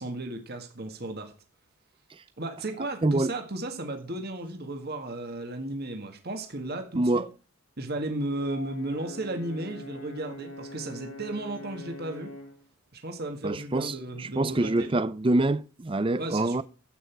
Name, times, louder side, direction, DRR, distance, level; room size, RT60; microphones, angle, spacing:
voice 1, 0.0-1.3 2.4-7.2 7.8-12.3 12.9-14.9 16.2-16.6, right 1 dB, 45° right, 1.8 m, -34 dB
voice 2, 6.9-7.3 13.4-16.6, right 2 dB, 25° right, 0.5 m, -25 dB
Brass instrument, 8.4-12.6, left 1 dB, 80° left, 3.3 m, -43 dB
11.0 x 8.8 x 4.6 m
head